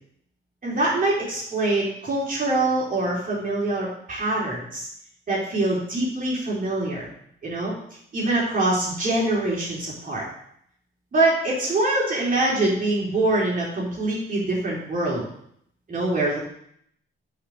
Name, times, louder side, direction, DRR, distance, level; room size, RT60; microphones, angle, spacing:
voice 1, 0.6-4.9 5.3-7.1 7.4-7.7 8.1-10.2 11.1-15.2 15.9-16.4, right 2 dB, 40° right, -5 dB, 4.0 m, -24 dB
8.7 x 5.5 x 6.6 m, 0.68 s
cardioid pair, 115°, 21 cm